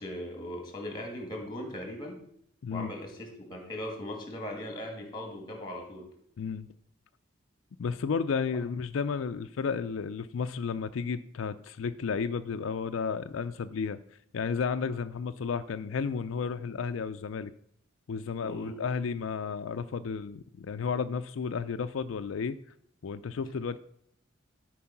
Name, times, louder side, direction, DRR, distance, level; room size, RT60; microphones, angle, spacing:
voice 1, 0.0-2.2 2.7-6.1 8.5-8.7 18.4-18.8, left 1 dB, 20° left, 2 dB, 2.1 m, -39 dB
voice 2, 6.4-6.7 7.8-14.0 14.3-17.5 18.1-22.6 23.0-23.8, left 5 dB, 85° left, 10 dB, 0.4 m, -32 dB
12.5 x 4.7 x 5.8 m, 0.70 s
head